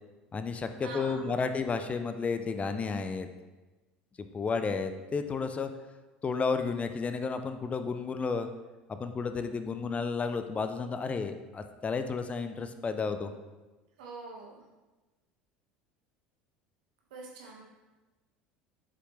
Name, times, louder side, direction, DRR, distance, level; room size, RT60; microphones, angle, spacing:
voice 1, 0.3-3.3 4.3-5.7 6.2-8.5 8.9-13.3, left 5 dB, 30° left, 9 dB, 0.6 m, -32 dB
voice 2, 0.8-1.5 14.0-14.5 17.1-17.6, right 3 dB, 75° right, -1 dB, 1.6 m, -44 dB
7.8 x 6.0 x 3.2 m, 1.2 s
hypercardioid pair, 75°, 5 cm